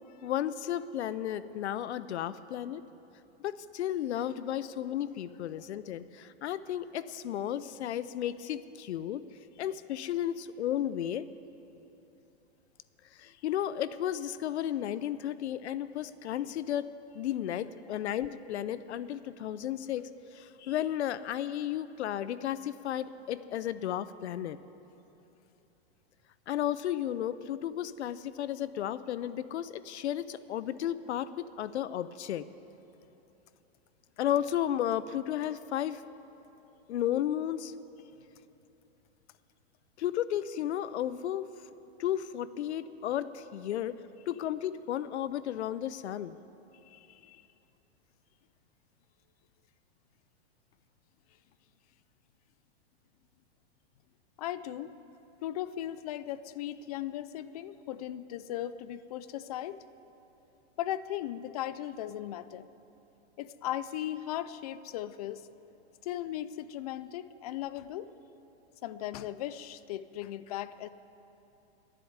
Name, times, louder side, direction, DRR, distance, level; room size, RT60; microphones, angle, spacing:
voice 1, 0.2-2.8 3.4-9.2 9.6-11.3 13.1-16.9 17.1-24.6 26.5-32.5 34.2-36.0 36.9-37.7 40.0-41.5 42.0-43.9 44.3-46.3, left 11 dB, 85° left, 15 dB, 0.6 m, -33 dB
voice 2, 46.9-47.4 54.4-55.0 55.4-59.8 60.8-62.7 63.4-65.5 66.0-68.1 68.8-70.9, left 12 dB, 35° left, 15 dB, 0.4 m, -37 dB
11.5 x 10.0 x 9.5 m, 3.0 s
supercardioid pair, 150°, 33 cm